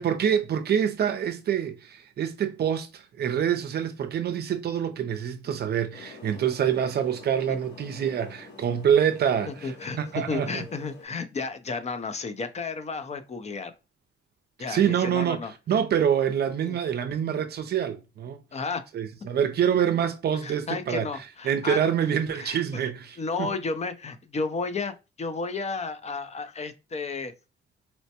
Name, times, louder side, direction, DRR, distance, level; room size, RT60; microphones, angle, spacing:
voice 1, 0.0-9.7 10.0-10.6 14.7-15.4 15.7-18.4 18.9-21.1 21.4-23.5, right 8 dB, 55° right, 0.5 m, -26 dB
sound 1, 5.9-11.0, left 4 dB, 60° left, 1.2 m, -47 dB
voice 2, 9.5-10.0 10.3-13.7 14.6-15.5 16.6-16.8 18.5-18.8 20.4-21.9 22.3-22.8 23.2-27.3, left 4 dB, 35° left, 0.5 m, -32 dB
4.3 x 2.1 x 2.8 m
cardioid pair, 90°, 20 cm